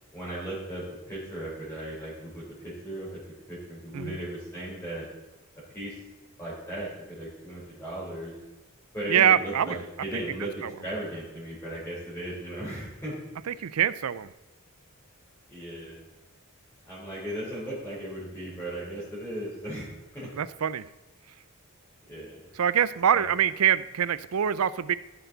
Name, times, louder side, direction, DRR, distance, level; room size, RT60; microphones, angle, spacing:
voice 1, 0.1-3.2 3.5-5.1 5.7-5.9 6.4-8.3 8.9-9.7 10.0-13.2 15.5-16.0 16.8-19.9 20.1-20.3 22.1-22.4 23.1-23.2, right 1 dB, 10° left, -8 dB, 3.7 m, -36 dB
voice 2, 9.1-9.8 10.6-10.7 13.5-14.3 20.3-20.8 22.5-24.9, right 9 dB, 75° right, 16 dB, 0.5 m, -24 dB
15.5 x 6.9 x 4.0 m, 1.1 s
head